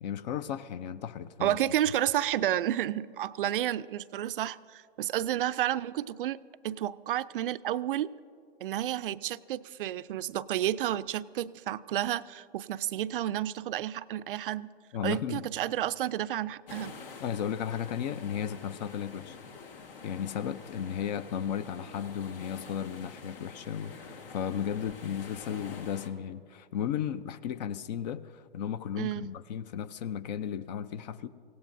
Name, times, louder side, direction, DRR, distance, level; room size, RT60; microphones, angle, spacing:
voice 1, 0.0-1.6 14.9-15.4 17.2-19.4 20.0-31.3, left 9 dB, 45° left, 16 dB, 0.6 m, -35 dB
voice 2, 1.4-6.4 6.6-8.1 8.6-14.7 15.0-17.0 29.0-29.3, right 12 dB, 60° right, 15 dB, 0.5 m, -31 dB
sound 1, 16.7-26.1, left 5 dB, 65° left, 1.6 m, -47 dB
24.5 x 17.0 x 2.6 m, 2.1 s
hypercardioid pair, 135°, 30 cm